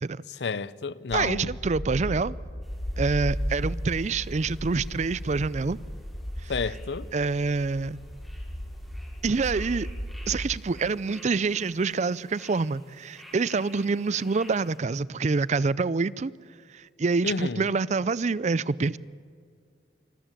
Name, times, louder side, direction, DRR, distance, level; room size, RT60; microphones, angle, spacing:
voice 1, 0.4-1.5 6.5-7.1 17.2-17.6, left 4 dB, 70° left, 0.6 m, -30 dB
sound 1, 1.1-10.3, equal, 45° left, 3.2 m, -35 dB
voice 2, 1.1-2.4 3.0-5.8 6.4-6.5 7.1-8.0 9.2-9.9 10.3-16.3 16.7-19.0, right 4 dB, 40° right, 0.4 m, -26 dB
sound 2, 2.6-14.8, equal, ahead, 6.0 m, -53 dB
26.0 x 14.0 x 9.0 m
head